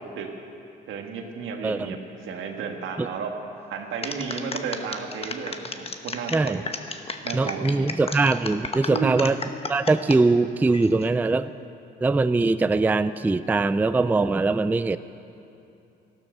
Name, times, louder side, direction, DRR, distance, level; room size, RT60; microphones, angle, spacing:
voice 1, 0.9-3.3 3.7-6.7 7.2-7.9 8.9-9.2, right 6 dB, 80° right, 3 dB, 1.6 m, -33 dB
voice 2, 1.6-1.9 3.0-3.1 6.3-6.6 7.3-9.4 9.7-11.5 12.0-15.0, right 3 dB, 10° right, 13 dB, 0.3 m, -22 dB
sound 1, 4.0-10.2 10.7-11.1, left 4 dB, 30° left, 1.0 m, -33 dB
14.0 x 12.0 x 6.6 m, 2.7 s
cardioid pair, 90°, 20 cm